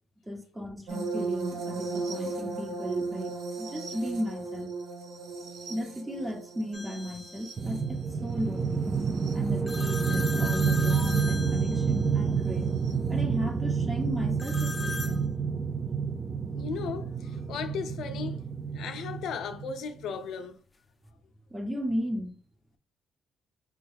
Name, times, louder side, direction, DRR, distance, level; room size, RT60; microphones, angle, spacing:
voice 1, 0.3-4.7 5.7-8.9 9.3-12.7 13.1-15.3 21.5-22.3, equal, 15° right, 1.0 m, -35 dB
sound 1, 0.9-9.6 10.9-11.1 12.8-12.9, right 3 dB, 75° right, 0.8 m, -37 dB
sound 2, 6.7-7.5 9.7-12.3 14.4-15.2, left 4 dB, 20° left, 0.4 m, -38 dB
sound 3, 7.6-19.8, right 5 dB, 35° right, 0.4 m, -29 dB
voice 2, 16.5-18.4 18.7-20.6, left 6 dB, 75° left, 0.5 m, -36 dB
4.5 x 2.3 x 3.4 m
cardioid pair, 90°, 0 cm